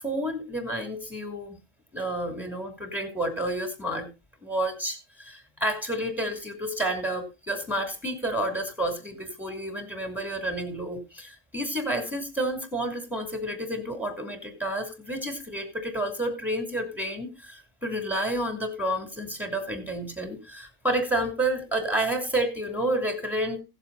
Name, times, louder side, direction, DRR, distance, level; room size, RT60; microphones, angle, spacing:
voice 1, 0.0-1.6 1.9-4.1 4.4-23.6, right 1 dB, ahead, 5 dB, 2.9 m, -30 dB
17.0 x 7.2 x 4.0 m, 0.28 s
omnidirectional pair, 1.5 m